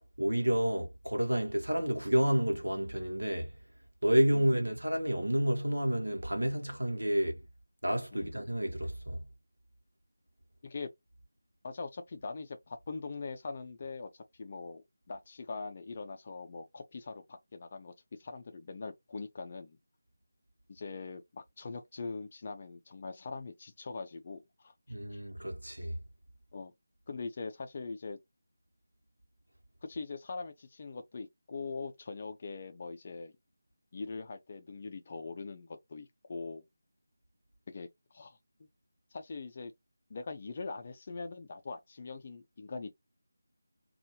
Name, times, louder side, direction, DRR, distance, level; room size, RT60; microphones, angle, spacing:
voice 1, 0.2-3.5 4.0-7.5 7.8-9.2 24.9-26.0, equal, 75° right, 1.2 m, -30 dB
voice 2, 11.6-17.9 18.2-19.8 20.7-24.7 26.5-26.7 27.1-28.2 29.8-33.3 33.9-36.6 37.7-37.9 38.1-38.7 39.1-39.7 40.1-42.9, left 4 dB, 30° left, 0.5 m, -42 dB
2.6 x 2.4 x 3.0 m
figure-of-eight pair, 160°, 0 cm